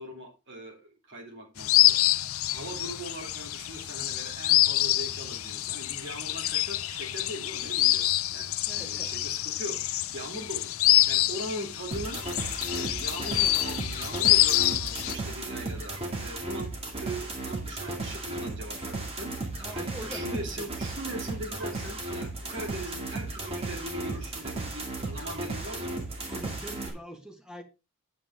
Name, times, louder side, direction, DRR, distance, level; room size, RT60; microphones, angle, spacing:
voice 1, 0.0-2.2 2.5-10.7 11.1-12.2 12.7-19.3 19.7-25.9, right 1 dB, 55° right, 2.9 m, -40 dB
sound 1, 1.6-15.1, left 15 dB, 75° left, 0.5 m, -26 dB
voice 2, 8.7-9.1 19.6-20.7 26.3-27.6, equal, 5° right, 1.5 m, -43 dB
sound 2, 11.9-26.9, right 2 dB, 25° right, 2.3 m, -35 dB
9.0 x 7.5 x 3.5 m
head